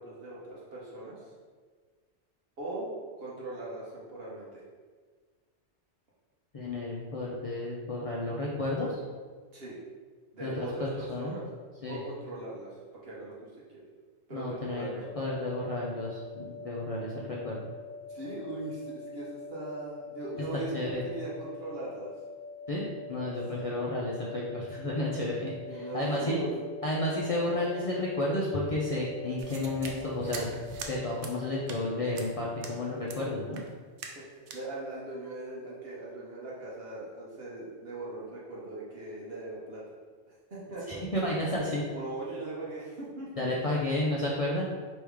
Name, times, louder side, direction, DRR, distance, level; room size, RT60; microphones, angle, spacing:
voice 1, 0.0-1.3 2.6-2.9 3.2-4.6 9.5-9.8 10.3-11.5 11.9-13.8 14.3-15.1 18.1-22.1 23.5-23.8 25.7-26.7 34.3-39.8 40.5-41.0 41.9-43.5, right 2 dB, 60° right, -6 dB, 1.1 m, -40 dB
voice 2, 6.5-9.0 10.4-11.4 11.8-12.0 14.3-17.6 20.4-20.5 20.7-21.0 22.7-26.4 26.8-30.5 30.9-33.6 40.9-41.8 43.4-44.7, left 1 dB, 45° left, -5 dB, 0.5 m, -32 dB
sound 1, 15.0-33.7, left 4 dB, 80° left, 1.0 m, -45 dB
sound 2, 29.4-30.9 31.2-31.4 31.7-31.8 32.2-32.3 32.6-32.8 33.1-33.2 33.5-33.7 34.0-34.2 34.5-34.6, right 5 dB, 80° right, 0.9 m, -42 dB
3.4 x 3.1 x 4.7 m, 1.5 s
omnidirectional pair, 1.2 m